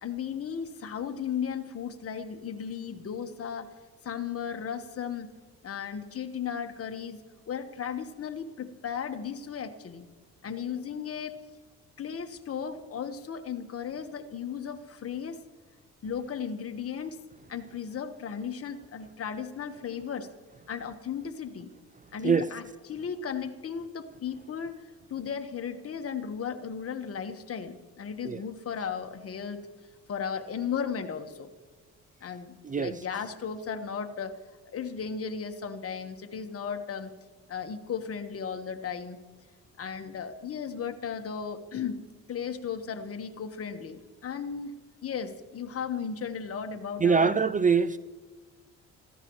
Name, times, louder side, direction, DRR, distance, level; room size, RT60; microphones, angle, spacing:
voice 1, 0.0-3.7 4.0-5.3 5.6-7.2 7.5-10.1 10.4-11.4 12.0-15.4 16.0-17.2 17.5-20.3 20.7-21.7 22.1-24.8 25.1-29.6 30.1-31.5 32.2-34.4 34.7-37.1 37.5-39.2 39.8-42.0 42.3-44.8 45.0-47.4, left 7 dB, 50° left, 1.4 m, -35 dB
voice 2, 47.0-48.0, right 5 dB, 25° right, 0.4 m, -23 dB
26.0 x 15.5 x 3.2 m
cardioid pair, 90°, 30 cm